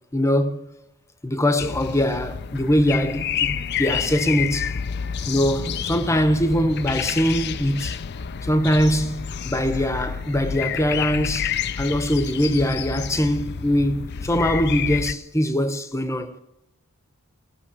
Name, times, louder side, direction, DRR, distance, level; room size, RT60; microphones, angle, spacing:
voice 1, 0.1-0.7 1.2-4.8 5.3-8.0 8.4-16.4, equal, 15° left, 0.9 m, -22 dB
sound 1, 1.6-15.1, left 7 dB, 50° left, 0.5 m, -29 dB
17.5 x 6.6 x 8.7 m
head